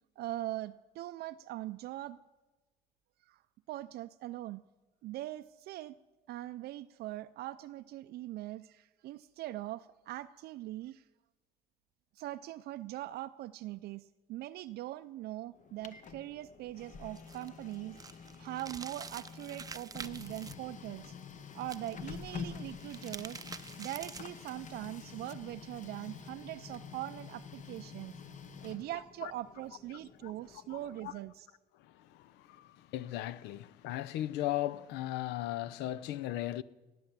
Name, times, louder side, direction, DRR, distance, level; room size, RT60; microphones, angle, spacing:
voice 1, 0.2-2.2 3.2-3.4 3.7-4.6 5.0-6.0 6.3-11.1 12.1-21.1 21.5-23.4 23.8-28.1 28.6-31.5, right 15 dB, 70° right, 0.4 m, -42 dB
Printer, 15.5-31.3, left 6 dB, 50° left, 1.1 m, -48 dB
sound 1, 17.1-20.5 21.6-22.2 22.7-24.4, right 5 dB, 20° right, 0.5 m, -47 dB
voice 2, 30.2-31.1 31.7-36.6, left 14 dB, 90° left, 0.6 m, -38 dB
16.5 x 9.5 x 7.4 m
cardioid pair, 110°, 17 cm